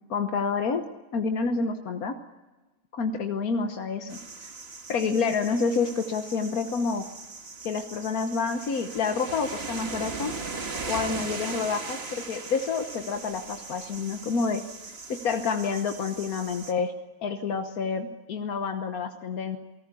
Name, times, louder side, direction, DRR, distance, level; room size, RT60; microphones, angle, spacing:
voice 1, 0.1-0.8 1.1-2.1 2.9-4.5 4.9-7.0 7.6-10.3 10.9-14.6 15.1-16.9 17.2-19.6, left 5 dB, 85° left, 6 dB, 1.6 m, -28 dB
sound 1, 4.1-16.7, right 3 dB, 45° right, 1.9 m, -39 dB
28.5 x 19.0 x 8.4 m, 1.2 s
omnidirectional pair, 1.5 m